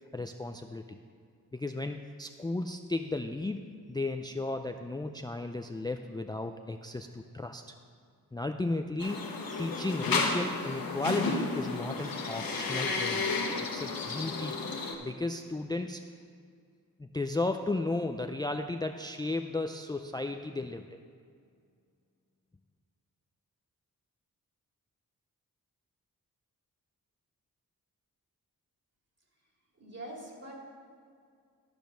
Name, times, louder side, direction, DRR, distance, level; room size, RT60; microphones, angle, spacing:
voice 1, 0.1-1.0 1.5-3.6 3.9-7.6 8.3-9.2 9.5-13.2 13.7-14.6 15.0-16.0 17.0-21.0, left 2 dB, 10° left, 6 dB, 0.4 m, -34 dB
sound 1, 9.0-14.9, left 3 dB, 75° left, 1.3 m, -32 dB
voice 2, 29.8-30.5, right 1 dB, 45° right, -2 dB, 2.7 m, -43 dB
12.5 x 5.2 x 6.2 m, 2.2 s
cardioid pair, 60°, 35 cm